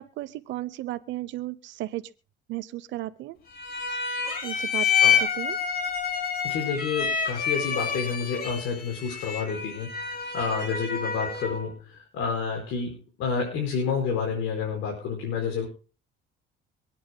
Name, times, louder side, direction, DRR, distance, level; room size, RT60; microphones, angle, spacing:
voice 1, 0.0-2.0 2.5-3.4 4.4-4.9 5.4-5.6, right 16 dB, 70° right, 12 dB, 0.8 m, -34 dB
sound 1, 3.5-11.7, left 7 dB, 50° left, 3.0 m, -28 dB
voice 2, 6.4-15.7, left 5 dB, 80° left, 0 dB, 5.1 m, -29 dB
26.5 x 9.4 x 2.2 m, 0.36 s
cardioid pair, 125°, 20 cm